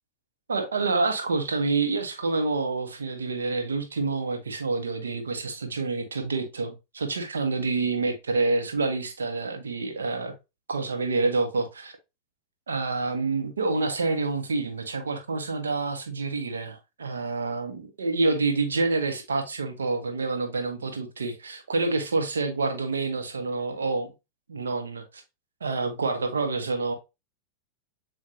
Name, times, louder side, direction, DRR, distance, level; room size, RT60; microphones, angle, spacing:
voice 1, 0.5-10.3 10.7-11.9 12.7-24.1 24.5-25.2 25.6-26.9, right 3 dB, 70° right, 1.1 m, -27 dB
7.3 x 2.5 x 2.8 m
figure-of-eight pair, 90°, 0 cm